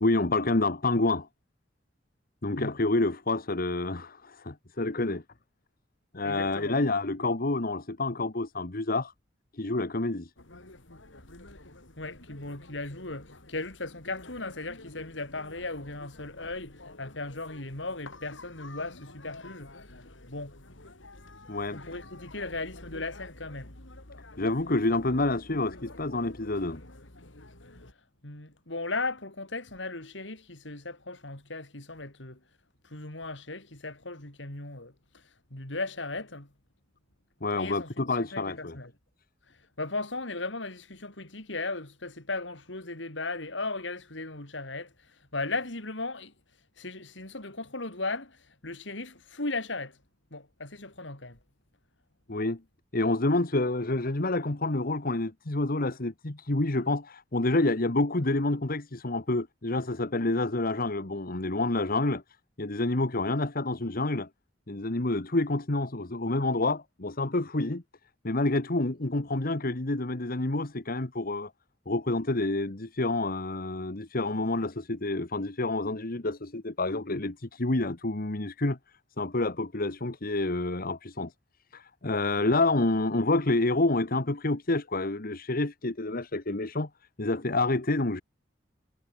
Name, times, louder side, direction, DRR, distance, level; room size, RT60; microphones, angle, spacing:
voice 1, 0.0-1.3 2.4-5.2 6.1-9.1 9.5-10.3 21.5-21.8 24.4-26.8 37.4-38.8 52.3-52.6 52.9-62.2 62.6-64.3 64.7-67.8 68.2-71.5 71.9-78.8 79.2-81.3 81.7-86.9 87.2-88.2, left 2 dB, 50° left, 1.6 m, -28 dB
voice 2, 6.2-6.8 12.0-20.5 21.7-23.7 28.2-32.4 32.9-34.9 35.5-36.5 37.5-38.9 39.8-44.9 45.3-46.3 46.8-48.4 48.6-49.9 50.3-51.4, left 3 dB, 70° left, 4.7 m, -37 dB
sound 1, 10.4-27.9, left 2 dB, 85° left, 4.1 m, -49 dB
head